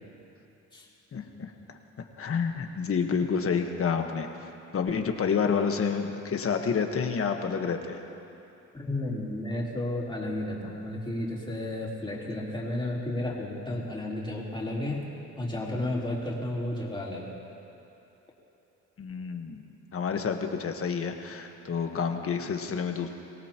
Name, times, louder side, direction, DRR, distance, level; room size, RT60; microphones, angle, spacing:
voice 1, 1.1-4.3 4.7-8.0 19.0-23.1, left 6 dB, 50° left, 4 dB, 1.4 m, -29 dB
voice 2, 8.7-15.0 15.4-17.4, left 1 dB, 15° left, -5 dB, 3.7 m, -32 dB
23.5 x 17.5 x 3.0 m, 2.8 s
cardioid pair, 90°, 30 cm